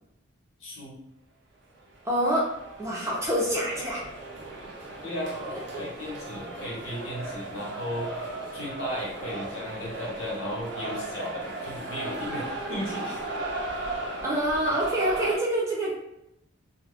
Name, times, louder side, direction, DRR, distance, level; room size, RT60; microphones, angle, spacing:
voice 1, 0.6-1.0 4.6-4.7 5.0-5.3 5.8-8.1 8.5-13.2, left 1 dB, 85° left, -4 dB, 1.1 m, -35 dB
sound 1, 1.8-15.4, right 2 dB, 55° right, 0.5 m, -36 dB
voice 2, 2.0-2.4 2.8-4.0 5.7-5.8 14.2-15.9, right 1 dB, 15° right, -6 dB, 0.7 m, -26 dB
2.3 x 2.2 x 3.5 m, 0.83 s
head